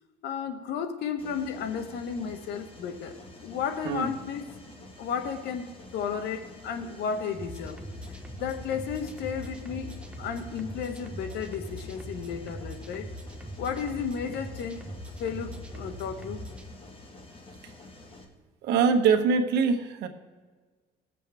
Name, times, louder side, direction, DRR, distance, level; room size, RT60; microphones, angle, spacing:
voice 1, 0.2-4.5 5.0-7.8 8.3-9.9 10.2-13.1 13.6-14.9 15.2-16.5, left 7 dB, 75° left, 8 dB, 1.2 m, -33 dB
Mechanisms, 1.2-18.2, left 2 dB, 30° left, 1.7 m, -49 dB
sound 1, 7.3-16.6, equal, 5° right, 1.1 m, -42 dB
voice 2, 18.6-20.1, right 5 dB, 80° right, 5 dB, 1.3 m, -23 dB
19.5 x 7.5 x 3.5 m, 1.5 s
cardioid pair, 110°, 17 cm